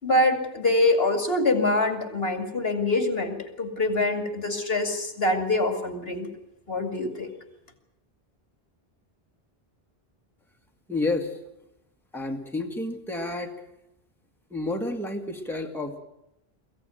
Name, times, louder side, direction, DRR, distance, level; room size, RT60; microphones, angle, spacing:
voice 1, 0.0-6.3 6.7-7.3, left 2 dB, 75° left, 5 dB, 2.7 m, -24 dB
voice 2, 10.9-11.4 12.1-13.5 14.5-16.0, left 2 dB, ahead, 2 dB, 1.9 m, -30 dB
23.0 x 15.5 x 9.2 m, 0.88 s
omnidirectional pair, 1.0 m